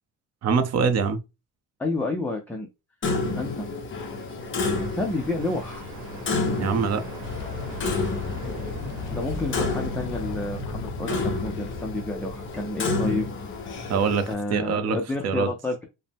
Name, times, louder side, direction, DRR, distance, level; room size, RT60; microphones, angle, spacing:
voice 1, 0.4-1.2 6.6-7.0 13.9-14.2 14.5-15.0 15.2-15.5, right 5 dB, 45° right, 0.7 m, -23 dB
voice 2, 1.8-2.7 3.3-3.7 4.6-5.9 9.1-13.3 13.5-13.8 14.3-15.8, left 2 dB, 5° left, 0.4 m, -30 dB
Clock, 3.0-14.3, left 3 dB, 30° left, 0.8 m, -30 dB
sound 1, 3.7-13.7, right 3 dB, 85° right, 1.5 m, -40 dB
sound 2, 7.2-14.6, left 9 dB, 80° left, 0.6 m, -38 dB
5.2 x 2.1 x 3.4 m
cardioid pair, 165°, 38 cm